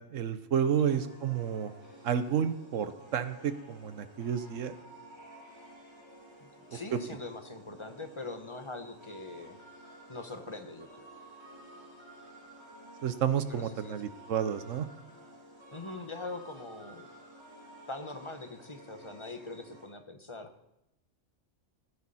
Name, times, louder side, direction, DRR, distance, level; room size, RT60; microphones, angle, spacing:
voice 1, 0.1-1.7 2.0-4.7 13.0-14.9, right 8 dB, 75° right, 12 dB, 1.2 m, -30 dB
sound 1, 0.8-19.9, right 1 dB, 20° right, 2.6 m, -53 dB
voice 2, 6.4-9.6 10.1-11.0 13.5-14.1 15.7-17.1 17.9-20.5, left 3 dB, 25° left, 7 dB, 1.0 m, -42 dB
15.5 x 11.5 x 4.2 m, 0.86 s
omnidirectional pair, 1.3 m